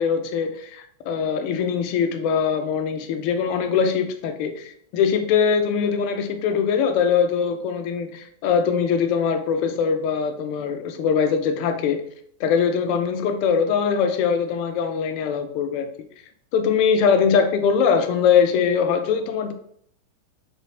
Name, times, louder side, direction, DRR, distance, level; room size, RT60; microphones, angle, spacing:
voice 1, 0.0-12.0 12.4-15.9 16.5-19.5, left 6 dB, 45° left, 0.4 m, -22 dB
3.0 x 2.8 x 2.7 m
figure-of-eight pair, 90°, 0 cm